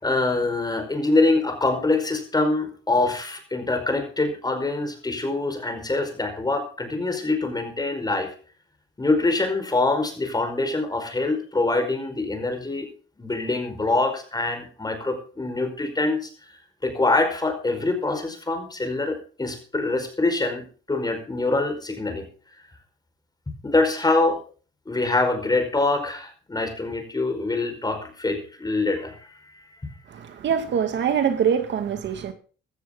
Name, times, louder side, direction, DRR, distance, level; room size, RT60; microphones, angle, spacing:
voice 1, 0.0-8.3 9.0-12.9 13.2-22.3 23.5-24.4 24.9-29.9, left 2 dB, 20° left, 6 dB, 5.1 m, -25 dB
voice 2, 30.1-32.3, right 7 dB, 65° right, 8 dB, 2.1 m, -24 dB
16.0 x 13.0 x 3.9 m, 0.39 s
cardioid pair, 90°, 20 cm